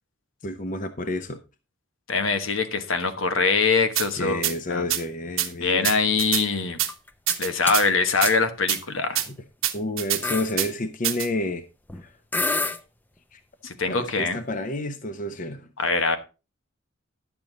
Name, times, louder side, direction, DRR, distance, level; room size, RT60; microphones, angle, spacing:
voice 1, 0.4-1.4 4.2-5.9 9.7-11.6 12.0-12.1 13.3-13.4 13.9-15.7, left 1 dB, 40° left, 0.7 m, -30 dB
voice 2, 2.1-4.4 4.7-4.8 5.6-6.8 7.4-9.2 13.6-14.4 15.8-16.2, left 4 dB, 80° left, 1.2 m, -23 dB
sound 1, 3.9-4.1 4.4-4.5 4.9-5.0 5.4-5.5 5.8-6.4 6.8-6.9 7.3-7.8 8.2-8.3 8.7-8.8 9.1-9.3 9.6-10.2 10.6-10.7 11.0-11.3, right 13 dB, 85° right, 1.2 m, -25 dB
sound 2, 6.9-7.4 7.7-7.9 8.3-8.4 9.2-9.4 9.8-9.9 10.2-10.5 11.9-12.0 12.3-12.8, left 2 dB, 10° left, 0.5 m, -27 dB
10.5 x 7.0 x 3.9 m
head